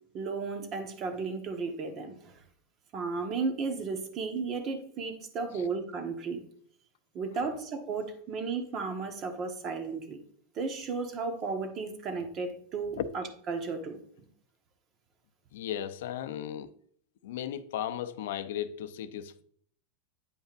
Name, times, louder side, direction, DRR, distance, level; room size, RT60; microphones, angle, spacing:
voice 1, 0.1-2.3 2.9-6.4 7.1-10.2 10.5-14.0, right 4 dB, 30° right, 1.2 m, -34 dB
voice 2, 15.5-16.7 17.2-19.4, left 10 dB, 75° left, 0.6 m, -36 dB
9.1 x 5.4 x 2.5 m
supercardioid pair, 150°, 0 cm